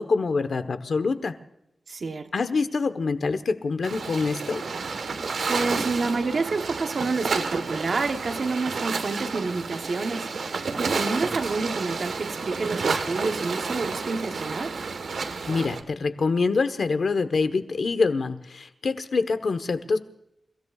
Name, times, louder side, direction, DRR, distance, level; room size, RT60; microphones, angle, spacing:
voice 1, 0.0-1.3 2.3-4.6 15.5-20.0, left 4 dB, 60° left, 1.2 m, -25 dB
voice 2, 1.9-2.3 5.5-14.8, right 3 dB, 55° right, 1.1 m, -29 dB
sound 1, 3.8-15.8, right 4 dB, 85° right, 1.4 m, -30 dB
29.5 x 16.5 x 2.4 m
wide cardioid pair, 175°, 0 cm